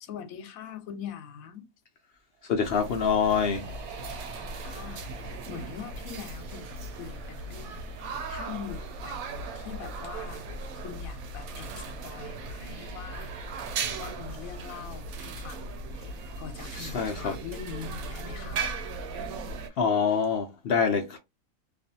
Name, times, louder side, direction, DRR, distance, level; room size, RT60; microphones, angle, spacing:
voice 1, 0.0-1.7 4.6-5.0 5.5-7.8 8.3-10.5 10.8-13.3 14.0-15.6 15.9-18.7, left 8 dB, 85° left, 1.0 m, -42 dB
sound 1, 2.3-15.9, right 6 dB, 60° right, 0.9 m, -49 dB
voice 2, 2.4-3.7 16.7-17.3 19.8-21.2, left 6 dB, 65° left, 0.6 m, -26 dB
sound 2, 2.6-19.7, right 3 dB, 85° right, 1.0 m, -38 dB
2.5 x 2.4 x 2.6 m
omnidirectional pair, 1.4 m